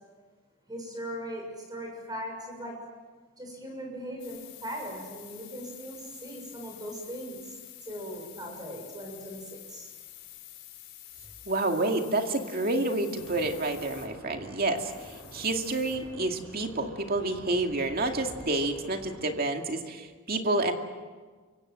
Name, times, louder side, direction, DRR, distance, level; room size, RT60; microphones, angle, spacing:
voice 1, 0.7-2.8 3.4-7.5 7.8-9.9, equal, 20° right, 2 dB, 6.7 m, -39 dB
sound 1, 4.2-14.1 14.8-16.0, left 13 dB, 50° left, 5.6 m, -48 dB
voice 2, 11.5-14.9 15.3-20.7, right 2 dB, 45° right, 4 dB, 2.3 m, -29 dB
sound 2, 13.1-19.2, equal, 5° left, 7.4 m, -48 dB
28.5 x 25.0 x 7.7 m, 1.4 s
head